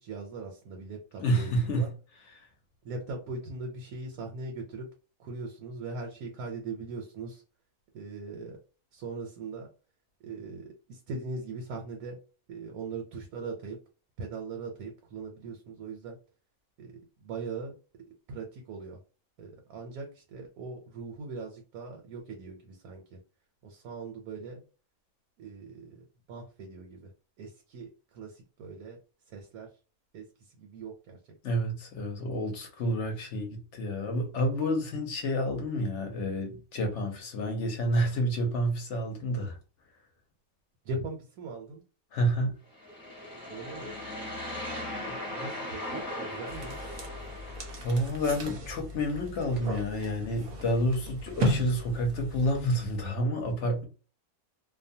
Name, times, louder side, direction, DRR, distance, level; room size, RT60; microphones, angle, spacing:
voice 1, 0.0-1.9 2.8-4.9 5.2-7.4 7.9-8.6 8.9-9.7 10.2-12.2 12.5-13.8 14.2-16.2 16.8-16.9 17.2-17.7 18.3-19.0 19.4-23.2 23.6-24.6 25.4-27.1 27.4-29.0 29.3-29.7 30.1-30.2 30.6-31.4 40.8-41.8 43.5-43.9 45.0-46.8, right 3 dB, 90° right, 1.2 m, -40 dB
voice 2, 1.2-1.9 31.4-39.6 42.1-42.5 47.8-53.8, equal, 60° left, 1.0 m, -29 dB
sound 1, 42.7-48.2, left 1 dB, 15° left, 1.1 m, -38 dB
sound 2, 46.5-53.1, right 1 dB, 55° right, 0.7 m, -37 dB
2.7 x 2.2 x 2.7 m
omnidirectional pair, 1.5 m